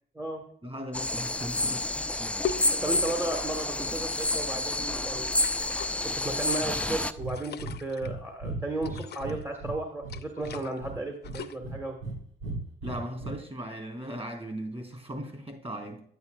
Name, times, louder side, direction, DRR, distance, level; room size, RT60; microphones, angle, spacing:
voice 1, 0.6-2.1 12.8-16.0, right 1 dB, 30° right, 3 dB, 3.9 m, -38 dB
sound 1, 0.9-7.1, left 2 dB, 5° left, 0.5 m, -29 dB
sound 2, 2.4-3.2 4.2-4.6 5.3-5.9 6.4-8.1 8.8-9.4 10.1-10.8 11.2-11.6, left 8 dB, 55° left, 0.7 m, -39 dB
voice 2, 2.7-5.3 5.6-11.9, right 2 dB, 10° right, 2 dB, 1.4 m, -34 dB
Breathing, 7.2-7.3 7.6-7.8 8.0-8.2 8.4-9.8 10.0-10.9 11.2-12.2 12.4-13.3, right 3 dB, 85° right, 2.5 m, -36 dB
9.6 x 9.5 x 2.3 m, 0.64 s
cardioid pair, 90°, 20 cm